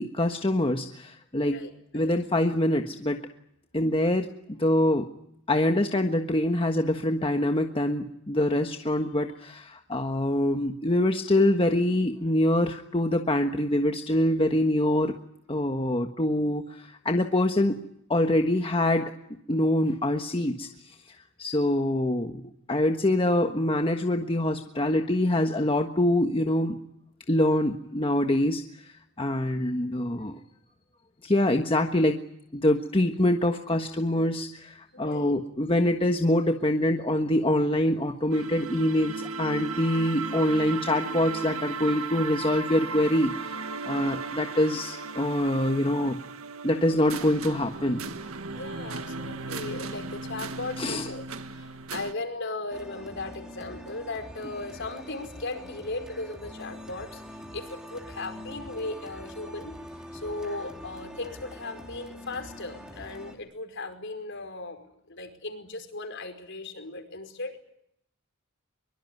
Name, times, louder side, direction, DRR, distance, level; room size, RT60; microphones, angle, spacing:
voice 1, 0.0-1.6 1.9-3.2 3.7-5.1 5.5-15.2 15.5-17.8 18.1-19.1 19.5-20.7 21.4-22.4 22.7-26.8 27.3-30.4 31.2-32.2 32.5-46.2 46.6-48.0 50.8-51.1, left 1 dB, 25° left, 4 dB, 1.4 m, -25 dB
voice 2, 1.4-2.1 34.9-35.4 48.5-59.7 60.1-67.6, left 2 dB, 60° left, 7 dB, 5.0 m, -37 dB
sound 1, 38.3-52.1, right 4 dB, 85° right, 1.8 m, -36 dB
sound 2, 52.7-63.4, equal, 5° right, 3.6 m, -44 dB
23.5 x 23.5 x 9.3 m, 0.75 s
head